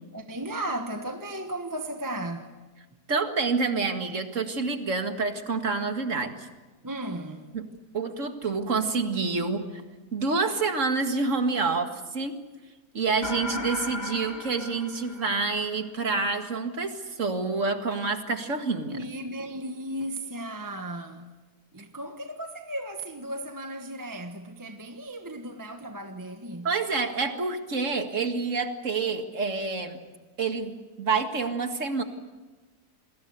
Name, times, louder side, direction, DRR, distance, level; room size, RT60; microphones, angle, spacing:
voice 1, 0.1-2.6 6.8-7.5 18.9-21.4 21.7-26.7, right 1 dB, 15° right, 1.2 m, -35 dB
voice 2, 3.1-6.5 7.5-7.7 7.9-9.8 10.1-12.4 12.9-19.0 26.6-30.0 30.4-32.0, right 4 dB, 50° right, 2.3 m, -28 dB
sound 1, 13.2-15.8, left 3 dB, 30° left, 1.4 m, -36 dB
28.5 x 21.0 x 8.0 m
omnidirectional pair, 1.7 m